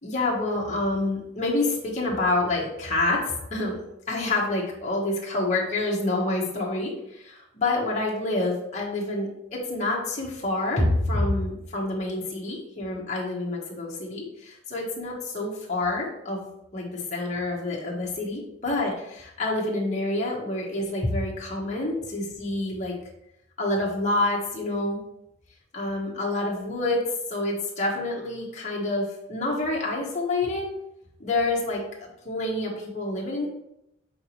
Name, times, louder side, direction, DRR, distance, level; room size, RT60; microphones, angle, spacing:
voice 1, 0.0-16.5 16.7-22.9 23.6-25.0 25.7-30.7 31.2-33.5, left 2 dB, 40° left, -3 dB, 1.4 m, -27 dB
7.6 x 4.1 x 3.2 m, 0.82 s
head